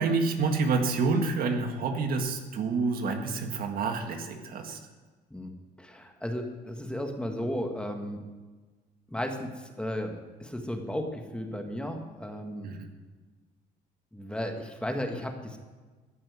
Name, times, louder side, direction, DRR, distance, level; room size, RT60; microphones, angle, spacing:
voice 1, 0.0-4.8 12.6-12.9, right 4 dB, 60° right, 4 dB, 1.7 m, -28 dB
voice 2, 5.8-8.2 9.1-12.7 14.1-15.6, equal, 5° left, 3 dB, 1.6 m, -34 dB
14.5 x 5.9 x 9.4 m, 1.3 s
cardioid pair, 110°, 17 cm